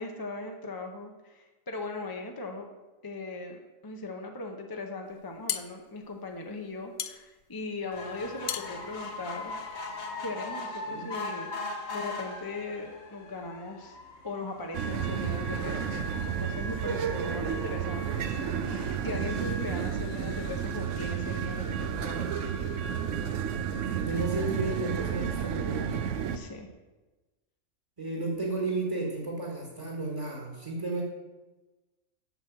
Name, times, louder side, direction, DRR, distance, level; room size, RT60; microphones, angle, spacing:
voice 1, 0.0-2.7 3.0-9.6 10.2-11.5 11.9-14.0 14.2-18.3 19.0-22.4 26.3-26.7, left 2 dB, 20° left, 3 dB, 0.7 m, -39 dB
sound 1, 5.1-10.0, left 11 dB, 80° left, 1.0 m, -38 dB
sound 2, 7.9-20.5 21.1-21.2 21.5-21.6 21.8-21.9, left 3 dB, 55° left, 1.4 m, -41 dB
sound 3, 14.7-26.4, right 7 dB, 65° right, 1.0 m, -31 dB
voice 2, 23.9-26.1 28.0-31.0, right 3 dB, 25° right, -1 dB, 1.7 m, -33 dB
8.0 x 6.3 x 7.5 m, 1.2 s
omnidirectional pair, 1.4 m